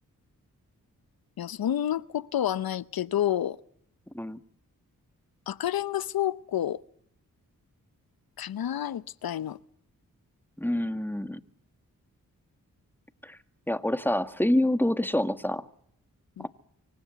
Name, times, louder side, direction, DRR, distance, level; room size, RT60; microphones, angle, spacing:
voice 1, 1.4-3.6 5.5-6.8 8.4-9.6 16.4-16.5, left 11 dB, 85° left, 0.8 m, -29 dB
voice 2, 10.6-11.4 13.2-13.4 13.7-15.7 16.4-16.5, left 1 dB, 5° left, 1.7 m, -27 dB
25.0 x 16.0 x 8.1 m
cardioid pair, 45°, 35 cm